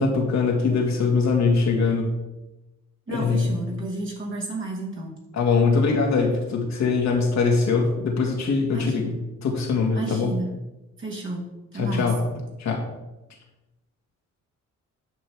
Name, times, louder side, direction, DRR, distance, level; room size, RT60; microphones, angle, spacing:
voice 1, 0.0-2.1 3.1-3.5 5.3-10.3 11.8-12.3 12.6-12.8, left 4 dB, 65° left, 1 dB, 2.1 m, -22 dB
voice 2, 3.1-5.1 8.7-9.1 9.9-10.5 11.0-11.5 11.7-12.1, right 2 dB, 40° right, -3 dB, 2.4 m, -32 dB
9.3 x 5.3 x 4.8 m, 0.98 s
cardioid pair, 90°, 30 cm